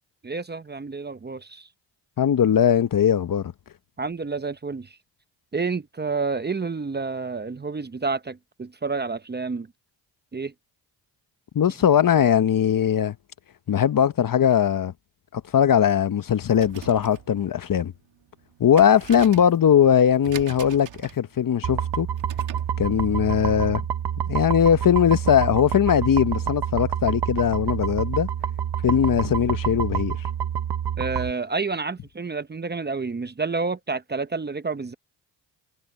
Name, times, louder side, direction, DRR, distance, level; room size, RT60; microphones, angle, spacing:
voice 1, 0.2-1.7 4.0-4.9 5.5-9.7 10.3-10.5 31.0-34.9, right 4 dB, 25° right, 0.8 m, -29 dB
voice 2, 2.2-3.5 11.5-13.1 13.7-14.9 15.3-17.9 18.6-22.1 22.8-23.8 24.3-28.3 28.8-30.2, left 9 dB, 50° left, 0.9 m, -20 dB
sound 1, 16.4-22.8, right 10 dB, 85° right, 2.4 m, -42 dB
sound 2, 21.6-31.3, right 9 dB, 60° right, 1.1 m, -28 dB
cardioid pair, 85°, 44 cm